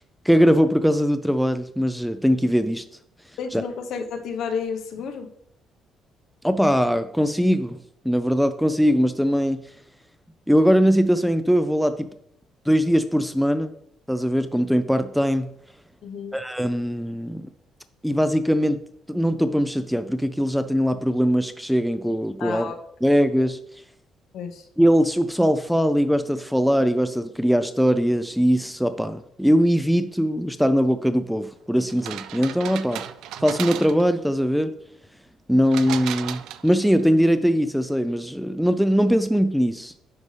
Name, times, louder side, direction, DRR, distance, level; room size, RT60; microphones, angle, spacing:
voice 1, 0.3-2.8 3.5-3.6 6.4-7.8 8.0-9.6 10.5-12.1 12.7-13.7 14.1-15.5 16.3-17.5 18.0-18.8 19.1-22.7 23.0-23.6 24.8-33.0 33.4-34.7 35.5-39.9, equal, ahead, 10 dB, 0.3 m, -21 dB
voice 2, 3.4-5.3 16.0-16.4 22.4-22.8 24.3-24.6, left 6 dB, 60° left, 5 dB, 1.0 m, -31 dB
sound 1, 31.9-34.2 35.7-37.0, right 11 dB, 80° right, 0.4 m, -35 dB
9.7 x 5.3 x 3.2 m, 0.70 s
cardioid pair, 165°, 0 cm